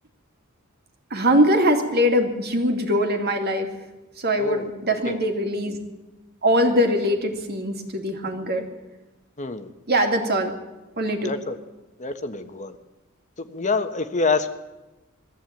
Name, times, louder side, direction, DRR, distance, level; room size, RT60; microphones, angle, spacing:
voice 1, 1.1-3.7 4.2-5.8 6.4-8.6 9.9-10.5 11.0-11.3, equal, 50° right, 4 dB, 2.8 m, -22 dB
voice 2, 4.4-4.7 5.0-5.2 9.4-9.7 11.2-11.6 12.0-12.8 13.4-14.5, left 3 dB, 35° left, 8 dB, 1.3 m, -26 dB
21.0 x 15.0 x 9.2 m, 1.1 s
head